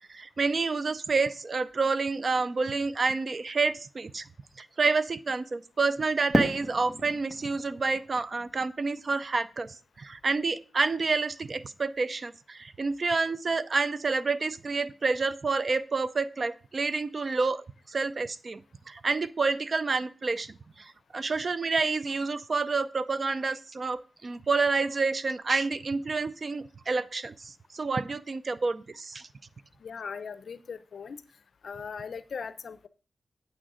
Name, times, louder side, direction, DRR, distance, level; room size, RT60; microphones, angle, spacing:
voice 1, 0.1-4.3 4.6-18.6 18.9-29.3, right 4 dB, 45° right, 15 dB, 0.4 m, -29 dB
Fireworks, 6.3-9.4, right 1 dB, 20° right, 1.4 m, -32 dB
voice 2, 29.8-31.2 31.6-32.9, left 6 dB, 70° left, 14 dB, 0.6 m, -39 dB
8.5 x 6.2 x 4.9 m, 0.37 s
wide cardioid pair, 120°, 0 cm